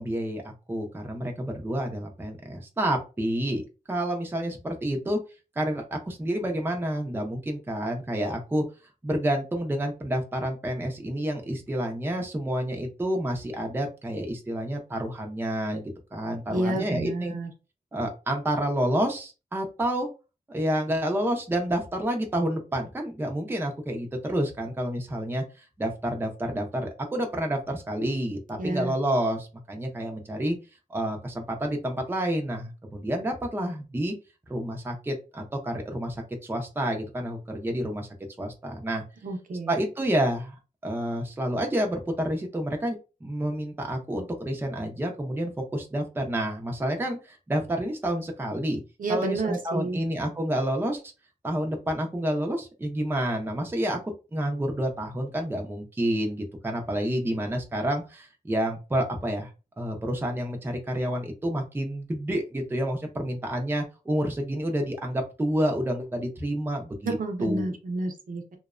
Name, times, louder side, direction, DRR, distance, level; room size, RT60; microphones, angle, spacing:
voice 1, 0.0-3.6 3.9-5.2 5.6-8.6 9.0-17.3 17.9-20.1 20.5-25.4 25.8-30.6 30.9-34.1 34.5-38.1 38.4-39.0 39.7-40.6 40.8-48.8 49.1-51.0 51.4-54.0 54.3-59.5 59.8-67.1 67.4-67.7, right 1 dB, 15° right, 2 dB, 0.4 m, -29 dB
voice 2, 16.5-17.5 28.6-29.0 39.2-39.7 49.0-50.0 67.0-68.6, right 2 dB, 65° right, 4 dB, 0.6 m, -30 dB
2.7 x 2.1 x 2.4 m, 0.31 s
wide cardioid pair, 110°, 15 cm